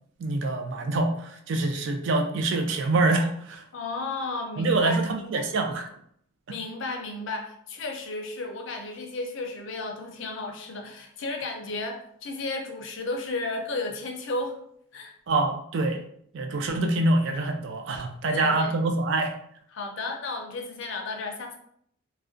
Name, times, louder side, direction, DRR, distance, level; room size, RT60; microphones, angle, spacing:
voice 1, 0.2-3.6 4.6-5.9 15.3-16.0 16.3-19.3, right 2 dB, 55° right, 4 dB, 0.3 m, -25 dB
voice 2, 3.7-5.5 6.5-14.6 14.9-15.1 18.2-18.7 19.7-21.5, left 2 dB, 60° left, 3 dB, 0.4 m, -33 dB
2.4 x 2.1 x 2.5 m, 0.67 s
head